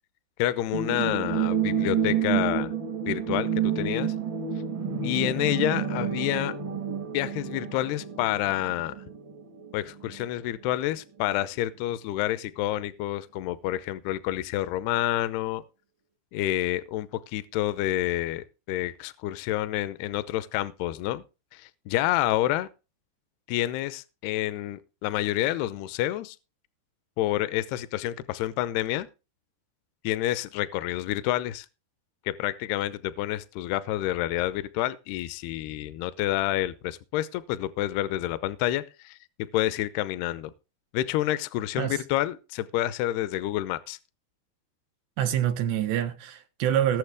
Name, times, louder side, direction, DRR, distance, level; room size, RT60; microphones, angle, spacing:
voice 1, 0.4-2.7 3.1-4.1 5.0-6.5 7.1-9.0 9.7-15.6 16.3-21.2 21.5-22.7 23.5-26.4 27.2-29.1 30.0-31.7 32.3-40.5 40.9-44.0, left 14 dB, 75° left, 2.6 m, -28 dB
sound 1, 0.7-10.3 10.6-10.7, right 7 dB, 50° right, 1.4 m, -29 dB
voice 2, 45.2-47.0, right 10 dB, 75° right, 3.3 m, -26 dB
20.0 x 7.3 x 3.5 m
omnidirectional pair, 5.0 m